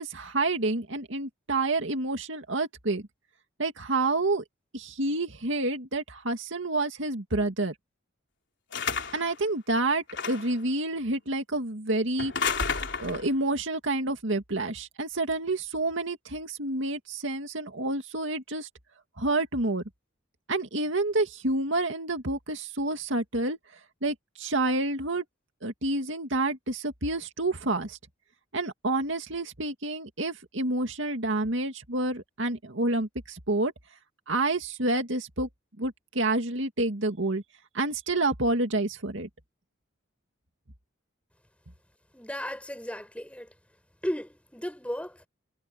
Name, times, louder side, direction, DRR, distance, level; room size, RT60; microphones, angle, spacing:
voice 1, 0.0-3.0 3.6-4.4 4.7-7.7 9.1-12.3 13.0-18.7 19.2-19.8 20.5-23.6 24.0-25.2 25.6-28.0 28.5-33.7 34.3-35.5 35.8-37.4 37.7-39.3, right 2 dB, 70° right, 2.2 m, -28 dB
sound 1, 8.7-9.3 10.1-10.6 12.2-13.3, left 5 dB, 60° left, 4.2 m, -31 dB
voice 2, 42.1-43.5 44.0-45.3, equal, 5° left, 7.8 m, -35 dB
head